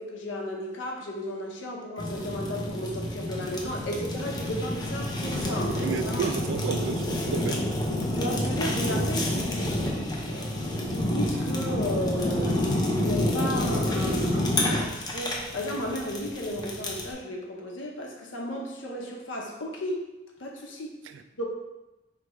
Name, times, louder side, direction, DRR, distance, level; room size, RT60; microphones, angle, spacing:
voice 1, 0.0-6.3 8.1-20.1 20.4-20.9 21.4-21.5, left 1 dB, 80° left, 0 dB, 0.9 m, -34 dB
Fire, 2.0-17.1, left 1 dB, 20° left, 0.6 m, -28 dB
voice 2, 5.8-7.6 21.1-21.2, right 6 dB, 80° right, 11 dB, 0.3 m, -32 dB
4.8 x 3.3 x 3.1 m, 1.0 s
head